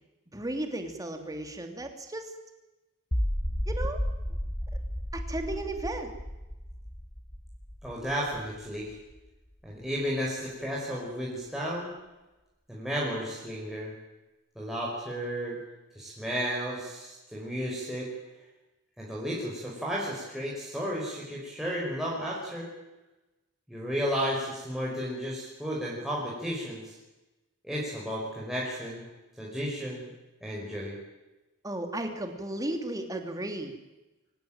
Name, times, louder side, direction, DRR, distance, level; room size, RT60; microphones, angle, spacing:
voice 1, 0.3-2.3 3.7-4.0 5.1-6.1 31.6-33.7, right 1 dB, 15° right, 5 dB, 3.1 m, -34 dB
sound 1, 3.1-9.2, equal, 15° left, 1.3 m, -33 dB
voice 2, 7.8-9.0 9.6-11.9 12.7-13.9 14.6-15.6 16.0-18.1 19.0-22.7 23.7-26.9 27.6-29.1 29.4-30.1 30.4-31.0, equal, ahead, -5 dB, 5.5 m, -33 dB
24.0 x 19.5 x 9.1 m, 1.1 s
head